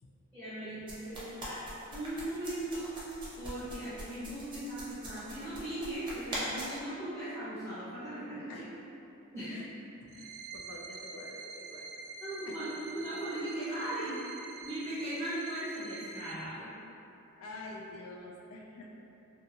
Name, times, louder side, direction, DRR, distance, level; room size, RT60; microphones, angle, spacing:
voice 1, 0.3-1.6 1.9-2.9 3.4-8.5 9.3-9.5 12.2-14.2 14.6-16.7, right 1 dB, 15° left, -16 dB, 0.8 m, -38 dB
sound 1, 0.9-6.8, right 1 dB, 20° right, 0.5 m, -41 dB
voice 2, 10.1-11.9 12.4-12.9 17.3-19.0, left 2 dB, 80° left, -1 dB, 0.4 m, -48 dB
sound 2, 10.1-16.3, right 4 dB, 75° right, 0.3 m, -46 dB
2.6 x 2.4 x 2.7 m, 2.8 s
head